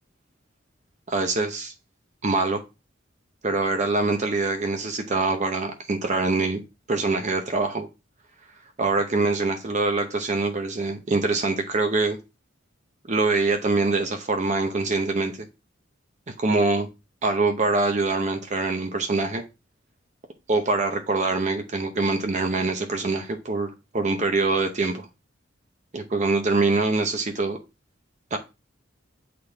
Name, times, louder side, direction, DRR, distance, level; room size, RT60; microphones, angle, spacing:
voice 1, 1.1-1.7 2.2-2.6 3.4-6.6 6.9-7.9 8.8-12.2 13.1-15.5 16.4-16.9 17.2-19.4 20.5-25.1 25.9-27.6 28.3-28.4, right 3 dB, 40° right, 0.7 m, -24 dB
8.3 x 3.8 x 3.4 m
head